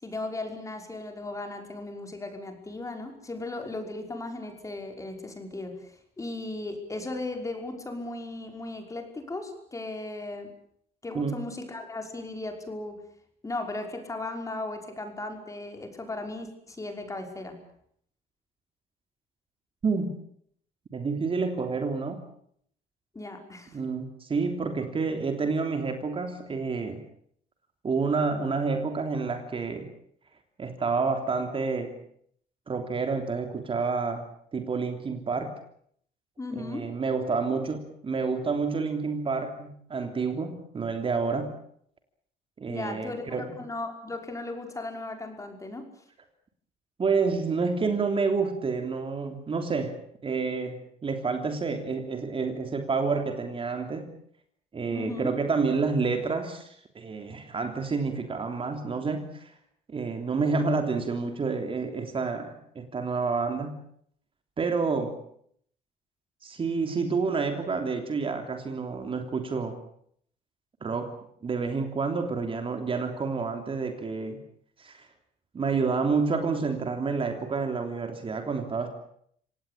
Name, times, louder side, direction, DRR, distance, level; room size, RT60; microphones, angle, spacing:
voice 1, 0.0-10.5 11.0-13.0 13.4-17.6 23.1-23.8 36.4-36.9 42.7-45.9 54.9-55.3, left 2 dB, 20° left, 4 dB, 5.6 m, -36 dB
voice 2, 20.9-22.2 23.7-27.0 27.8-29.9 30.6-32.0 32.7-34.2 34.5-35.6 36.5-41.5 42.6-43.5 47.0-49.9 50.2-54.1 54.7-59.5 59.9-63.8 64.6-65.2 66.4-69.7 70.8-71.1 71.4-74.4 74.8-75.1 75.5-78.9, right 4 dB, 30° right, 6 dB, 3.3 m, -29 dB
26.5 x 18.0 x 8.7 m, 0.67 s
cardioid pair, 110°, 17 cm